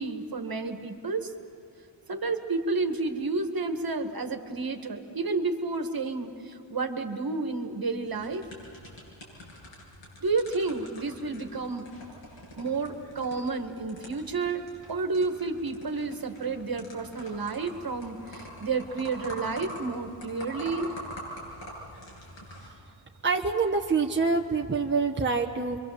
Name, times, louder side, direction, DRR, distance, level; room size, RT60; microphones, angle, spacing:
voice 1, 0.0-1.3 2.1-8.4 10.2-11.9 12.6-20.9, right 3 dB, 50° right, 6 dB, 1.9 m, -31 dB
sound 1, 8.1-22.7, equal, 85° left, 7.6 m, -45 dB
voice 2, 23.2-25.8, right 4 dB, 25° right, 1 dB, 1.1 m, -26 dB
27.0 x 24.0 x 7.6 m, 2.7 s
wide cardioid pair, 125°, 44 cm